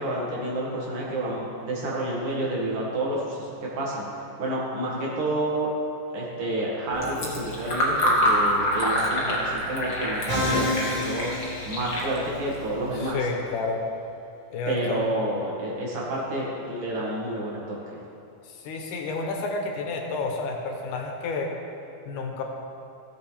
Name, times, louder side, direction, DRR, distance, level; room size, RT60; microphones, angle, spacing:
voice 1, 0.0-5.7 6.1-11.3 11.7-13.2 14.7-18.0, right 1 dB, 80° right, -5 dB, 3.6 m, -29 dB
Fill (with liquid), 6.9-13.1, equal, 40° left, 1.6 m, -27 dB
Musical instrument, 10.3-12.4, left 1 dB, 15° right, 1.4 m, -28 dB
voice 2, 12.9-13.8 14.5-15.1 18.5-21.5 22.1-22.4, left 3 dB, 80° left, 2 dB, 2.6 m, -30 dB
16.0 x 7.6 x 3.5 m, 2.7 s
omnidirectional pair, 3.6 m